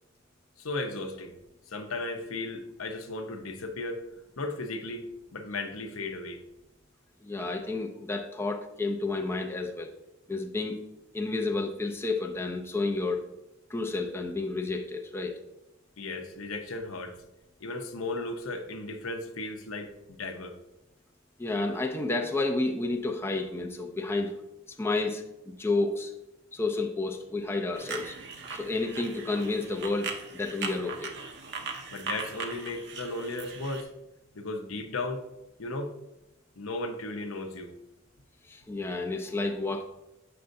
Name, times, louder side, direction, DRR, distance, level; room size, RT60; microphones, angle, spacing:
voice 1, 0.6-1.4 1.7-4.0 4.4-5.1 5.3-6.4 16.0-17.2 17.6-20.6 31.9-33.9 34.3-35.3 35.6-35.9 36.6-37.7, left 2 dB, 85° left, 6 dB, 0.8 m, -35 dB
voice 2, 7.2-9.9 10.3-10.8 11.1-13.2 13.7-15.3 21.4-24.4 24.7-26.1 26.5-28.2 28.5-31.1 38.5-39.8, left 3 dB, 10° left, 2 dB, 0.5 m, -30 dB
sound 1, 27.7-33.8, right 5 dB, 60° right, 0.8 m, -39 dB
6.7 x 6.5 x 2.6 m, 0.93 s
head